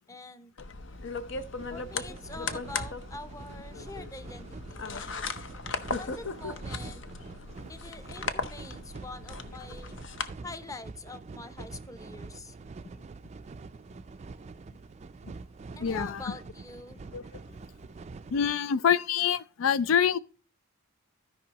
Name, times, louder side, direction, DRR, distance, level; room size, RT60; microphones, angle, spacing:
voice 1, 0.1-0.5 1.7-5.4 6.0-7.0 7.7-10.0 10.4-12.6 15.7-17.0, left 3 dB, 15° left, 0.7 m, -45 dB
sound 1, 0.6-10.3, left 4 dB, 65° left, 0.8 m, -37 dB
sound 2, 0.9-18.5, right 3 dB, 35° right, 0.4 m, -45 dB
voice 2, 15.8-16.2 17.1-17.2 18.3-20.2, left 8 dB, 85° left, 0.4 m, -25 dB
16.0 x 5.4 x 2.9 m
head